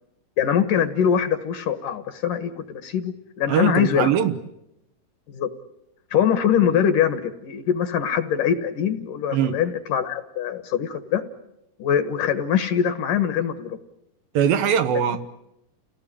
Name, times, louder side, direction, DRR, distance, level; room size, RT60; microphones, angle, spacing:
voice 1, 0.4-4.1 5.3-5.5 6.1-11.2 11.8-13.8 14.9-15.0, left 8 dB, 65° left, 2.6 m, -23 dB
voice 2, 3.5-4.4 9.3-9.6 14.3-15.3, right 8 dB, 70° right, 2.8 m, -21 dB
29.0 x 18.0 x 10.0 m
omnidirectional pair, 4.6 m